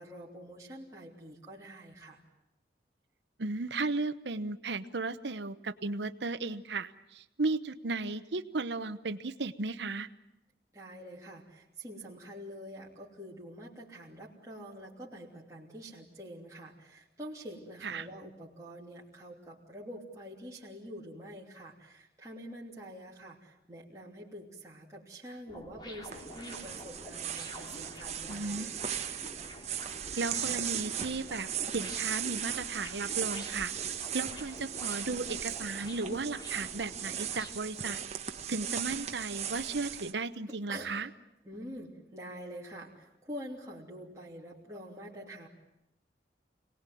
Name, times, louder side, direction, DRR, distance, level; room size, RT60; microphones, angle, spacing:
voice 1, 0.0-2.2 10.7-28.7 40.7-40.9 41.4-45.5, equal, 15° right, -6 dB, 3.0 m, -46 dB
voice 2, 3.4-10.1 17.8-18.1 28.3-28.7 30.2-38.0 38.5-41.1, right 3 dB, 70° right, 11 dB, 0.9 m, -35 dB
sound 1, 25.5-37.5, equal, 25° left, 2.7 m, -48 dB
sound 2, 26.1-40.1, right 9 dB, 35° right, 1.1 m, -38 dB
26.5 x 19.0 x 9.2 m, 0.89 s
head